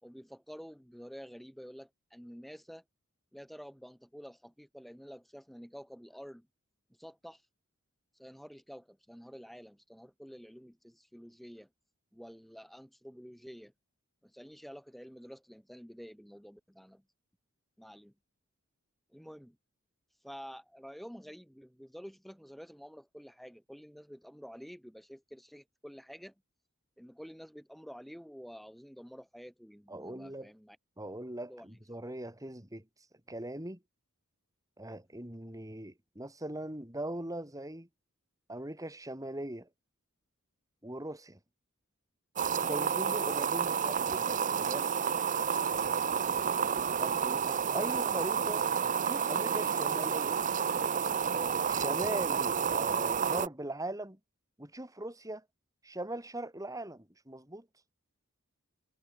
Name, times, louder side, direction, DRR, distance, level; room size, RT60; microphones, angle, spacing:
voice 1, 0.0-2.8 3.3-6.5 6.9-7.5 8.1-11.7 12.1-13.7 14.2-17.0 17.8-18.1 19.1-19.6 20.1-26.3 27.0-30.8 31.5-31.7 52.0-52.2, equal, ahead, 3.4 m, -49 dB
voice 2, 29.9-30.5 31.0-32.8 33.3-33.8 34.8-37.9 38.5-39.7 40.8-41.4 42.6-44.9 47.0-50.4 51.3-54.2 54.6-55.4 55.8-57.7, right 1 dB, 15° right, 4.5 m, -40 dB
sound 1, 42.4-53.5, right 7 dB, 40° right, 0.6 m, -30 dB
head